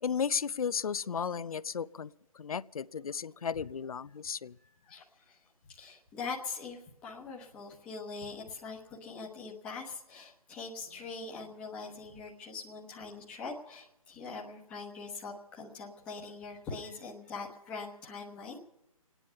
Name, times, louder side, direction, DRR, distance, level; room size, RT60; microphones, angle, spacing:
voice 1, 0.0-4.6, left 6 dB, 75° left, 0.5 m, -34 dB
voice 2, 4.8-18.6, left 4 dB, 5° left, 1.0 m, -43 dB
26.0 x 9.9 x 5.6 m
hypercardioid pair, 170°, 19 cm